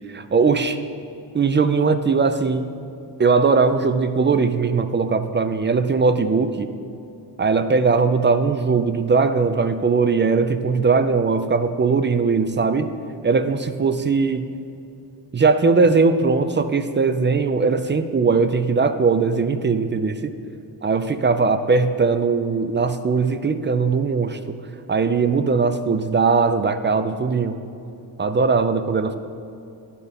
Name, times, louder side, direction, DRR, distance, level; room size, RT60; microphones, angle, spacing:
voice 1, 0.1-0.8 1.3-2.6 3.2-6.7 7.4-12.9 13.2-14.4 15.3-20.3 20.8-24.6 24.9-27.6 28.2-29.2, right 4 dB, 25° right, 10 dB, 0.5 m, -19 dB
10.5 x 4.2 x 5.2 m, 2.8 s
supercardioid pair, 55°, 45 cm